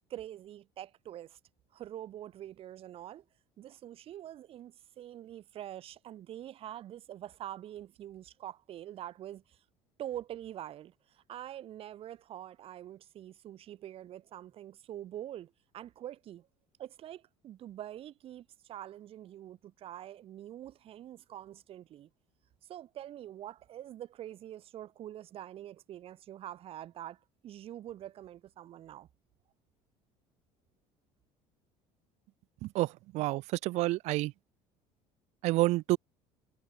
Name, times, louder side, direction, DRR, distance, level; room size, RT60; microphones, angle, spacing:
voice 1, 0.1-1.4 1.7-3.2 3.6-9.6 10.0-16.5 16.8-22.1 22.6-29.1, right 12 dB, 50° right, 5.8 m, -45 dB
voice 2, 32.6-34.3 35.4-36.0, right 19 dB, 65° right, 1.3 m, -29 dB
cardioid pair, 120°, 12 cm